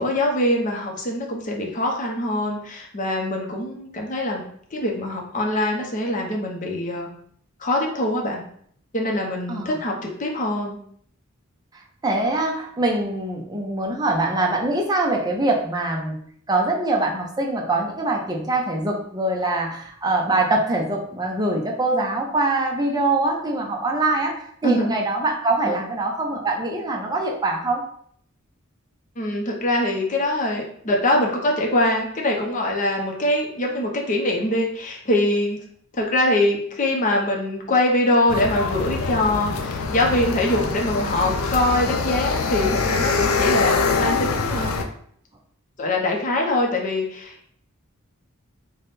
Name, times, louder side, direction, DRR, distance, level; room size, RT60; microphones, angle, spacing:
voice 1, 0.0-4.4 4.7-7.1 7.6-8.4 8.9-10.8 24.6-25.0 25.6-25.8 29.2-35.6 35.9-44.8 45.8-47.6, left 1 dB, 35° left, 0 dB, 0.6 m, -23 dB
voice 2, 12.0-16.2 16.5-27.8, right 2 dB, 20° right, 0 dB, 0.5 m, -23 dB
sound 1, 38.3-44.8, left 4 dB, 85° left, 0.4 m, -24 dB
3.4 x 2.2 x 4.0 m, 0.64 s
head